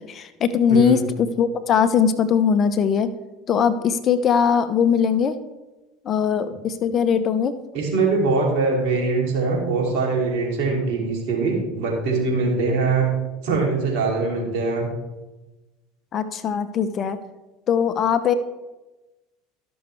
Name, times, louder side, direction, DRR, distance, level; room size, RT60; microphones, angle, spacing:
voice 1, 0.1-3.1 3.5-5.4 6.0-7.5 16.1-17.2 17.7-18.3, left 7 dB, 40° left, 12 dB, 0.7 m, -20 dB
voice 2, 0.7-1.0 7.7-13.1 13.4-14.9, right 3 dB, 60° right, -2 dB, 2.7 m, -22 dB
13.0 x 6.2 x 3.2 m, 1.1 s
hypercardioid pair, 75°, 0 cm